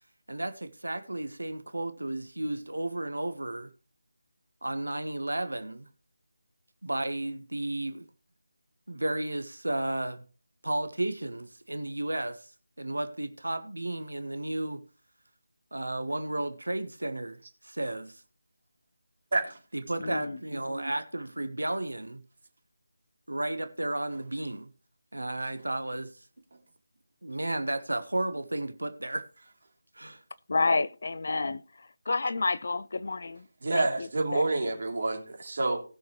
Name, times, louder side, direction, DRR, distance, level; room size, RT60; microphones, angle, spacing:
voice 1, 0.3-3.7 4.6-5.9 6.8-8.1 8.9-10.2 10.6-12.5 12.8-14.8 15.7-18.2 19.7-22.2 23.3-24.7 25.1-26.1 27.2-29.2 29.9-30.2, right 1 dB, 75° right, 1.3 m, -33 dB
voice 2, 20.0-20.4 30.5-33.5 33.7-34.7, left 3 dB, 50° left, 0.7 m, -30 dB
voice 3, 33.6-35.8, right 2 dB, 50° right, 3.3 m, -28 dB
19.0 x 6.6 x 3.2 m
figure-of-eight pair, 160°, 0 cm